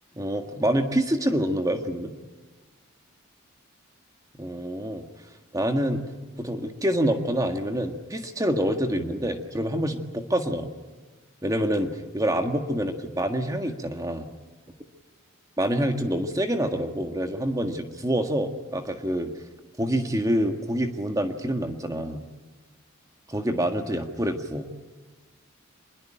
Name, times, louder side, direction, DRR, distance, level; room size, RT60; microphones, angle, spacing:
voice 1, 0.1-2.1 4.4-5.0 5.5-6.0 6.4-10.7 11.4-14.3 15.6-19.3 19.8-22.2 23.3-24.7, equal, 15° right, 5 dB, 1.7 m, -26 dB
25.5 x 22.0 x 8.9 m, 1.3 s
head